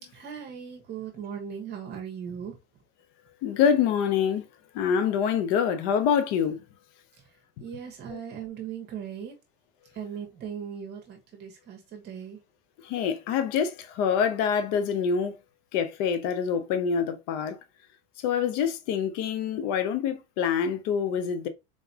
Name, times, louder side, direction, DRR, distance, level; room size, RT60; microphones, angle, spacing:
voice 1, 0.1-2.5 7.6-9.4 9.9-12.4, right 8 dB, 35° right, 1.2 m, -38 dB
voice 2, 3.4-4.4 4.7-6.6 8.1-8.2 12.8-15.4 15.7-17.6 18.2-21.5, left 7 dB, 55° left, 0.7 m, -26 dB
4.1 x 3.9 x 2.8 m
supercardioid pair, 145°, 29 cm